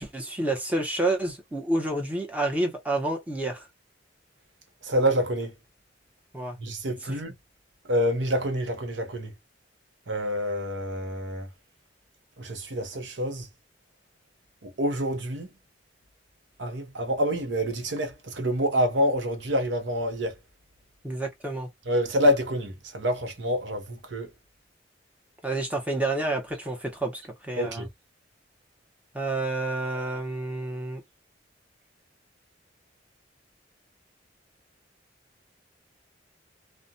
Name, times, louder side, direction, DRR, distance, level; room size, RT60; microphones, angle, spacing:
voice 1, 0.0-3.7 6.3-6.6 7.0-7.2 21.0-21.7 25.4-27.9 29.1-31.0, right 2 dB, 10° right, 0.9 m, -29 dB
voice 2, 4.8-5.5 6.6-7.3 7.9-9.3 10.1-11.5 12.4-13.5 14.6-15.5 16.6-20.4 21.9-24.3 27.6-27.9, equal, 70° right, 0.7 m, -27 dB
2.4 x 2.2 x 2.6 m
head